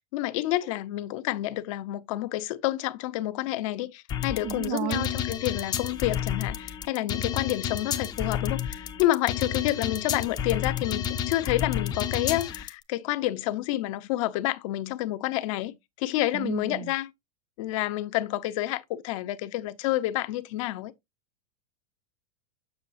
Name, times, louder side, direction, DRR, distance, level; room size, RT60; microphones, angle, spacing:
voice 1, 0.1-17.1 17.6-20.9, left 15 dB, 55° left, 0.7 m, -29 dB
sound 1, 4.1-12.7, left 8 dB, 20° left, 0.5 m, -31 dB
voice 2, 4.4-5.1 16.3-16.9, right 14 dB, 45° right, 0.5 m, -32 dB
7.0 x 6.6 x 2.6 m
supercardioid pair, 145°, 20 cm